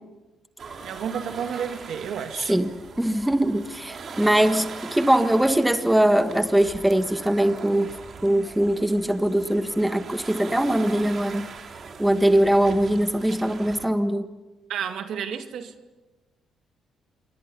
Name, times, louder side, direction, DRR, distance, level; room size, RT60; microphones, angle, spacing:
sound 1, 0.6-13.9, right 5 dB, 50° right, 3.2 m, -40 dB
voice 1, 0.8-2.6 14.7-15.7, right 8 dB, 75° right, 6 dB, 2.1 m, -31 dB
voice 2, 2.5-7.9 8.2-11.5 12.0-14.3, right 1 dB, 5° right, 8 dB, 1.5 m, -21 dB
27.5 x 24.5 x 5.5 m, 1.2 s
cardioid pair, 90°, 0 cm